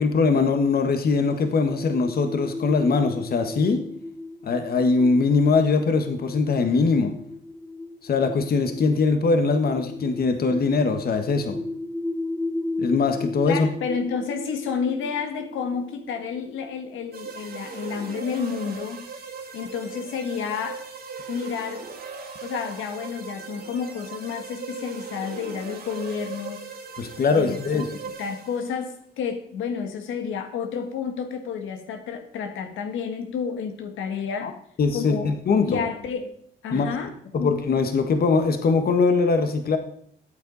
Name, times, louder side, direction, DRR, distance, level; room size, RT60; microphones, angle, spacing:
voice 1, 0.0-3.8 4.4-7.1 8.0-11.6 12.8-13.7 27.0-27.9 34.4-34.5 34.8-35.8 36.7-36.9 37.3-39.8, left 4 dB, 50° left, 7 dB, 1.4 m, -21 dB
sound 1, 1.0-17.3, left 2 dB, 15° left, 1.5 m, -35 dB
voice 2, 13.5-19.1 19.5-20.8 21.3-21.8 22.4-26.7 27.3-27.8 28.2-34.5 34.9-36.3 36.6-37.1 37.4-37.5, left 6 dB, 80° left, 6 dB, 1.5 m, -30 dB
sound 2, 17.1-28.9, right 5 dB, 50° right, 2.4 m, -39 dB
14.0 x 8.2 x 4.1 m, 0.64 s
cardioid pair, 90°, 20 cm